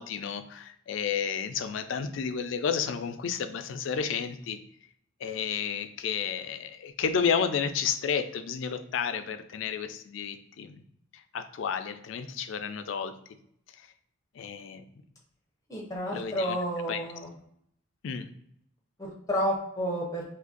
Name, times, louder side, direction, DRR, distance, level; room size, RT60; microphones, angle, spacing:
voice 1, 0.0-4.6 5.2-10.8 11.3-13.1 14.3-14.8 16.1-16.6 16.9-17.0 18.0-18.3, left 7 dB, 75° left, 9 dB, 0.4 m, -31 dB
voice 2, 15.7-17.3 19.0-20.2, equal, 15° left, -2 dB, 0.6 m, -30 dB
2.7 x 2.5 x 3.7 m, 0.71 s
head